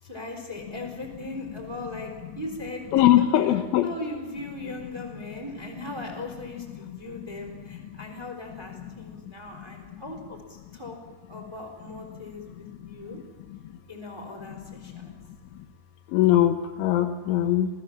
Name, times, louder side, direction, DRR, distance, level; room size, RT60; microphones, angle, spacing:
voice 1, 0.0-2.9 3.8-11.0 11.3-13.2 13.9-15.1, left 2 dB, 5° right, 2 dB, 3.0 m, -38 dB
voice 2, 2.9-3.9 16.1-17.7, left 12 dB, 80° left, 7 dB, 3.1 m, -20 dB
26.5 x 18.0 x 7.4 m, 1.3 s
omnidirectional pair, 5.9 m